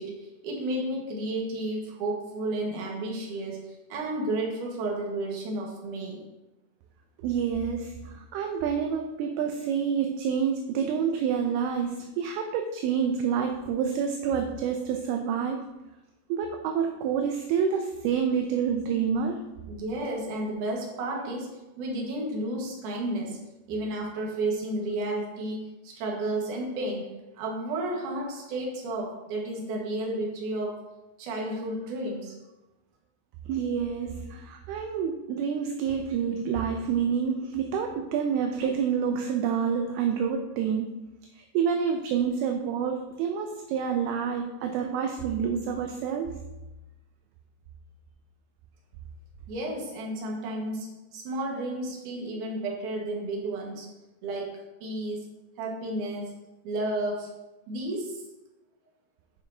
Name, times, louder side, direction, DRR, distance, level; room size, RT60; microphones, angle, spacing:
voice 1, 0.0-6.2 19.7-23.4 23.7-30.8 31.2-32.3 49.5-53.9 54.2-55.3 55.6-56.3 56.6-57.4 57.7-58.2, right 1 dB, 60° right, -1 dB, 2.6 m, -32 dB
voice 2, 7.2-15.7 16.3-19.5 33.5-40.9 41.3-46.4, right 7 dB, 80° right, 4 dB, 2.4 m, -28 dB
11.5 x 5.6 x 2.7 m, 1.0 s
omnidirectional pair, 4.8 m